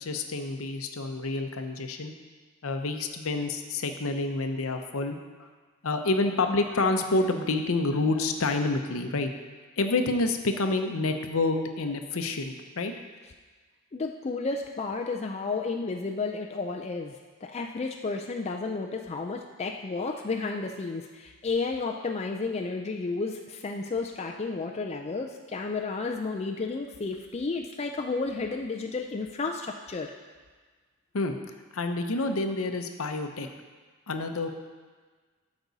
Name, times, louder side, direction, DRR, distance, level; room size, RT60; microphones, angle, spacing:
voice 1, 0.0-2.1 2.6-5.5 5.8-9.3 9.8-12.9 31.1-31.4 31.7-33.5 34.1-34.5, left 2 dB, 70° left, 6 dB, 0.7 m, -28 dB
voice 2, 13.9-30.1, left 3 dB, 30° left, 2 dB, 0.4 m, -32 dB
13.0 x 5.3 x 4.0 m, 1.4 s
head